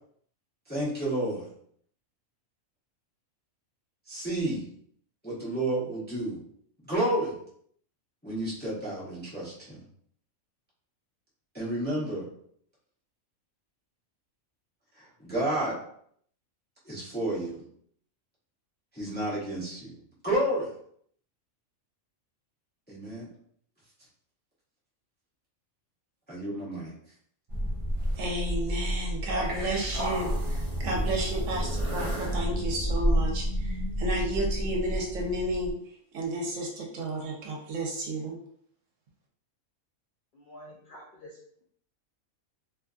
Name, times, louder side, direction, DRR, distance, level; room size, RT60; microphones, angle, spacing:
voice 1, 0.7-1.5 4.1-4.6 5.2-6.4 6.8-7.4 8.2-9.8 11.5-12.3 15.0-15.8 16.9-17.6 18.9-20.0 20.2-20.7 22.9-23.3 26.3-26.9, right 1 dB, 10° left, -7 dB, 0.4 m, -30 dB
sound 1, 27.5-35.7, equal, 50° right, 0.4 m, -30 dB
voice 2, 28.2-35.7 36.1-38.4, right 1 dB, 70° right, 0 dB, 1.0 m, -32 dB
voice 3, 40.4-41.3, equal, 75° left, -2 dB, 0.4 m, -48 dB
2.5 x 2.5 x 2.3 m, 0.65 s
omnidirectional pair, 1.4 m